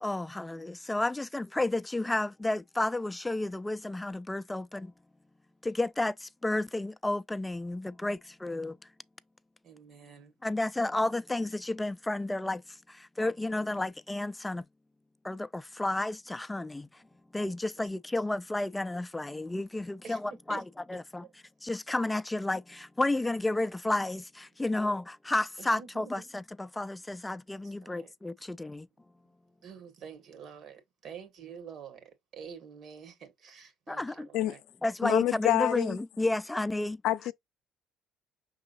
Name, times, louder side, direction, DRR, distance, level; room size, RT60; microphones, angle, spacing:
voice 1, 0.0-4.9 5.6-8.8 10.4-12.6 12.9-14.6 15.2-16.9 17.3-20.6 20.9-21.2 21.6-26.2 26.7-28.9 33.9-34.3 34.8-37.0, left 2 dB, 10° left, 0.3 m, -31 dB
voice 2, 9.6-10.4 17.7-17.8 20.0-20.6 20.9-21.3 25.6-26.3 27.6-28.1 29.6-34.6, right 7 dB, 60° right, 1.9 m, -48 dB
voice 3, 35.0-36.0 37.0-37.3, left 14 dB, 75° left, 0.5 m, -27 dB
5.5 x 3.7 x 2.6 m
supercardioid pair, 85°, 0 cm